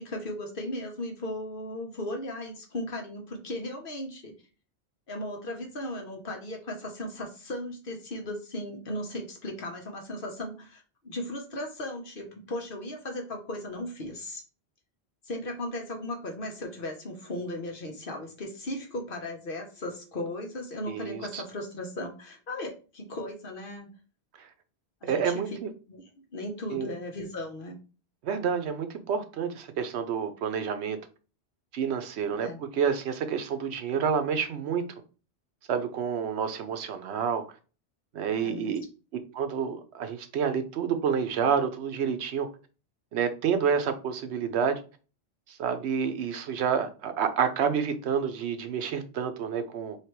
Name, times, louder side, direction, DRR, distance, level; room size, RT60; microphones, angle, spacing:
voice 1, 0.0-4.4 5.1-14.4 15.3-23.9 25.0-25.4 25.9-26.0 26.3-27.8 32.3-32.6 38.3-38.7, left 1 dB, 55° left, 1.1 m, -36 dB
voice 2, 20.9-21.4 24.4-24.5 25.1-25.7 26.7-26.9 28.2-31.0 31.7-34.8 35.7-37.4 38.1-38.8 39.3-42.5 43.1-44.8 45.5-50.0, right 7 dB, 80° right, 0.9 m, -29 dB
3.3 x 2.8 x 4.4 m
omnidirectional pair, 1.1 m